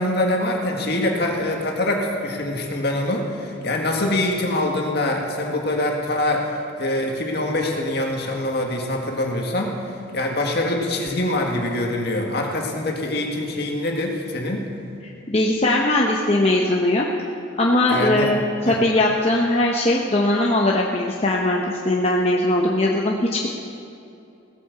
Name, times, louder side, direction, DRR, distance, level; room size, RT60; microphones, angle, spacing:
voice 1, 0.0-14.7 17.9-18.3 18.6-18.8, left 1 dB, 55° left, 1 dB, 1.9 m, -24 dB
voice 2, 15.3-17.1 17.6-23.5, left 1 dB, 30° left, -2 dB, 0.9 m, -20 dB
17.0 x 8.5 x 6.8 m, 2.7 s
head